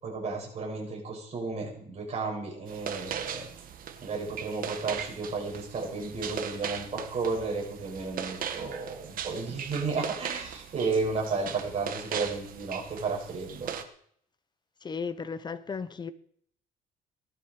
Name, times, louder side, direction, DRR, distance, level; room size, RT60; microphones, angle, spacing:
voice 1, 0.0-3.5 4.0-13.7, right 4 dB, 40° right, 7.3 m, -33 dB
sound 1, 2.7-13.8, right 8 dB, 55° right, 1.7 m, -39 dB
voice 2, 14.8-16.1, left 5 dB, 25° left, 1.0 m, -35 dB
18.5 x 12.0 x 5.0 m
cardioid pair, 110°, 17 cm